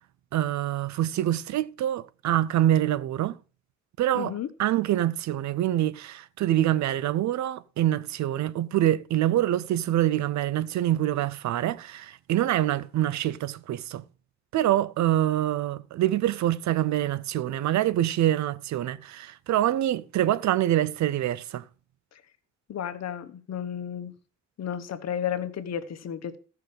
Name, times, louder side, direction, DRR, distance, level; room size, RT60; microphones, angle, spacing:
voice 1, 0.3-3.4 4.0-4.3 4.6-14.0 14.5-21.6, right 13 dB, 70° right, 0.6 m, -25 dB
voice 2, 4.1-4.5 22.1-22.2 22.7-24.1 24.6-26.4, left 9 dB, 60° left, 1.2 m, -33 dB
13.5 x 5.8 x 5.2 m
cardioid pair, 90°, 30 cm